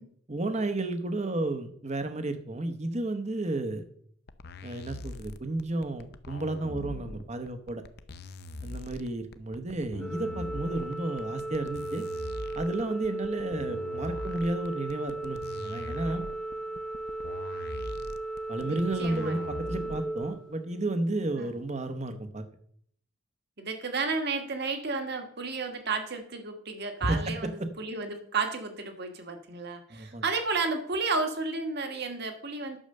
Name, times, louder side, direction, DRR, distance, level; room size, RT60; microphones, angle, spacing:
voice 1, 0.3-3.8 4.6-7.8 8.6-12.0 12.5-16.2 18.5-22.4 27.0-27.7 29.9-30.2, right 2 dB, 30° right, 9 dB, 0.9 m, -32 dB
sound 1, 4.3-20.3, left 2 dB, 50° left, 0.6 m, -42 dB
Organ, 10.0-21.1, right 2 dB, 5° left, 0.6 m, -36 dB
voice 2, 18.7-19.4 21.4-21.5 23.6-32.8, right 4 dB, 50° right, 6 dB, 1.5 m, -32 dB
10.0 x 6.5 x 6.6 m, 0.64 s
head